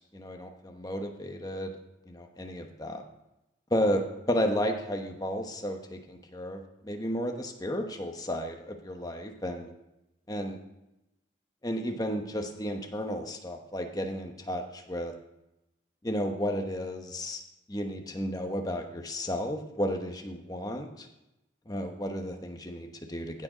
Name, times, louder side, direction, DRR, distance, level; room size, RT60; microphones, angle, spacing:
voice 1, 0.1-1.7 2.1-3.0 3.7-9.7 10.3-10.6 11.6-15.1 16.0-17.4 17.7-21.1 21.7-23.4, equal, 20° left, 4 dB, 1.0 m, -33 dB
16.0 x 6.4 x 5.0 m, 0.91 s
head